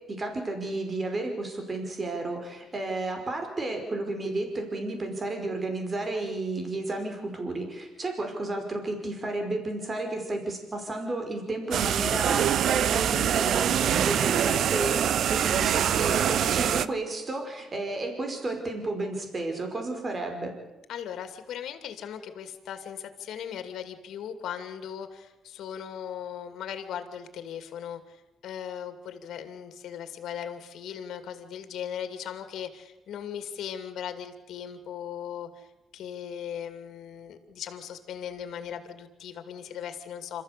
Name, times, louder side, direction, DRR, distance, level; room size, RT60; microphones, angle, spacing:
voice 1, 0.1-20.5, right 2 dB, 30° right, 4 dB, 5.2 m, -32 dB
sound 1, 11.7-16.9, right 9 dB, 70° right, 0.7 m, -24 dB
voice 2, 20.9-40.4, left 9 dB, 75° left, 9 dB, 2.5 m, -38 dB
26.5 x 14.5 x 8.3 m, 1.0 s
cardioid pair, 90°, 0 cm